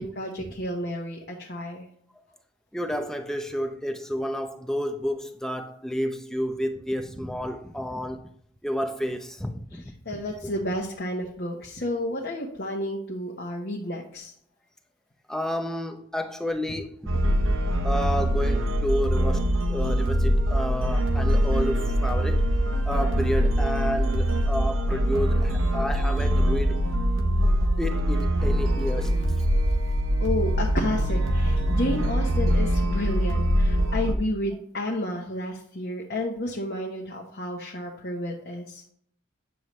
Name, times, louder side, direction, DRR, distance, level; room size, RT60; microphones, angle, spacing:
voice 1, 0.0-1.9 9.7-14.3 30.2-38.8, left 1 dB, 50° left, 1.0 m, -31 dB
voice 2, 2.7-8.3 8.6-10.2 15.3-17.2 17.8-22.4 22.8-26.8 27.8-29.2, equal, 5° left, 0.6 m, -30 dB
sound 1, 17.1-34.1, equal, 85° right, 0.9 m, -23 dB
9.1 x 6.7 x 3.1 m
head